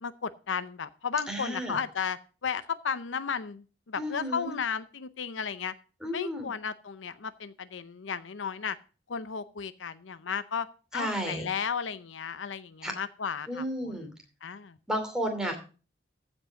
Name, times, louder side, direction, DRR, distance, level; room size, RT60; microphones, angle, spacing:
voice 1, 0.0-5.7 6.1-8.8 9.1-10.7 10.9-14.1 14.4-14.8, left 6 dB, 85° left, 14 dB, 0.6 m, -34 dB
voice 2, 1.3-1.8 4.0-4.5 6.0-6.5 10.9-11.5 12.8-12.9 13.5-14.1 14.9-15.6, equal, 5° right, 3 dB, 2.7 m, -32 dB
14.5 x 5.4 x 5.7 m, 0.36 s
head